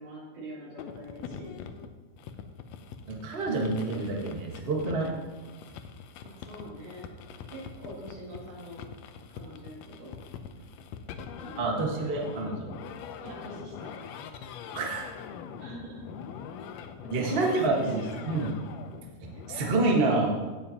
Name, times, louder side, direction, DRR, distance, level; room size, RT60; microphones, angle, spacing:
voice 1, 0.0-1.5 6.2-7.0 7.4-8.8 9.4-10.1 11.4-12.5 13.2-13.9 15.6-16.0 17.0-18.3, equal, 75° right, -6 dB, 4.5 m, -43 dB
sound 1, 0.8-19.7, left 7 dB, 80° left, 1.6 m, -43 dB
voice 2, 3.1-5.1 11.6-12.7 14.7-15.1 17.1-18.5 19.5-20.3, right 2 dB, 50° right, -1 dB, 0.6 m, -27 dB
17.0 x 7.3 x 2.9 m, 1.3 s
omnidirectional pair, 3.6 m